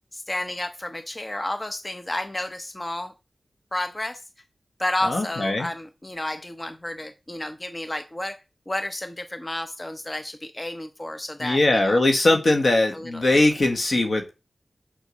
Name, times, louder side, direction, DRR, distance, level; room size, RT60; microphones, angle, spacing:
voice 1, 0.1-3.1 3.7-4.2 4.8-8.4 8.7-12.0 12.9-13.0, left 1 dB, 30° left, 9 dB, 0.9 m, -31 dB
voice 2, 5.0-5.7 11.4-14.3, left 2 dB, 70° left, 4 dB, 1.6 m, -21 dB
7.0 x 5.8 x 6.4 m, 0.29 s
cardioid pair, 45°, 0 cm